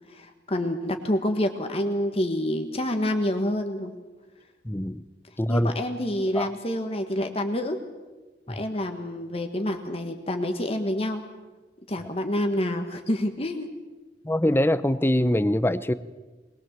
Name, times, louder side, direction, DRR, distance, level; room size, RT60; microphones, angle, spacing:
voice 1, 0.1-3.9 5.5-7.8 8.5-11.2 11.9-13.7, left 1 dB, 35° left, 6 dB, 1.5 m, -27 dB
voice 2, 4.6-5.0 5.4-5.7 6.3-6.5 8.5-8.6 14.2-15.9, left 1 dB, 10° left, 14 dB, 0.7 m, -23 dB
21.0 x 21.0 x 7.5 m, 1.2 s
head